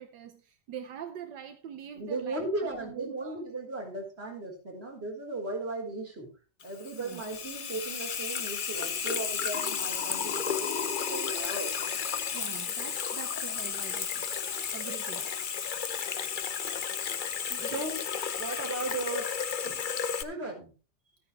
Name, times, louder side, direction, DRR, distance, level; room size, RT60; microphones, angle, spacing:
voice 1, 0.0-3.4 6.9-7.2 12.3-14.3 14.7-15.3 17.5-17.8 19.6-20.0, right 9 dB, 80° right, 1.6 m, -44 dB
voice 2, 1.9-6.3 6.6-11.7 17.6-18.0 18.4-19.3 20.2-20.7, right 2 dB, 35° right, 4.6 m, -36 dB
Water tap faucet / Sink (filling or washing), 6.6-20.2, left 7 dB, 60° left, 0.5 m, -33 dB
13.5 x 10.0 x 3.3 m
omnidirectional pair, 1.9 m